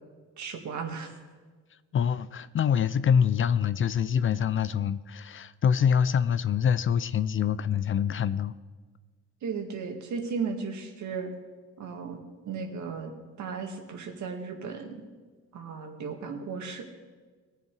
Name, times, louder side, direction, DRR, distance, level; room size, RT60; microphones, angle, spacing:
voice 1, 0.4-1.2 9.4-11.3 11.8-12.2 12.5-13.1 13.4-15.0 15.5-16.8, right 5 dB, 70° right, 3 dB, 2.0 m, -35 dB
voice 2, 1.9-8.5, left 7 dB, 45° left, 15 dB, 0.5 m, -25 dB
19.0 x 7.2 x 4.8 m, 1.4 s
cardioid pair, 90°, 30 cm